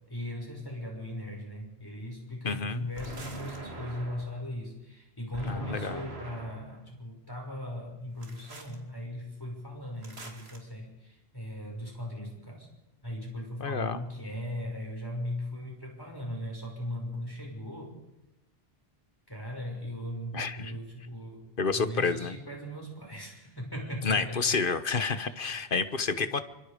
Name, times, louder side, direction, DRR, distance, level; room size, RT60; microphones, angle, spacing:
voice 1, 0.1-12.7 13.0-18.0 19.3-24.6 25.1-25.5 26.1-26.3, left 1 dB, 20° left, 0 dB, 6.1 m, -38 dB
voice 2, 2.4-2.8 5.5-6.0 13.6-14.0 20.3-20.7 21.6-22.3 24.0-26.4, left 4 dB, 55° left, 12 dB, 1.3 m, -29 dB
sound 1, 3.0-4.4 5.3-6.8 8.2-8.8 10.0-10.6, right 1 dB, 85° right, 3.0 m, -43 dB
28.0 x 24.5 x 5.1 m, 0.94 s
omnidirectional pair, 1.0 m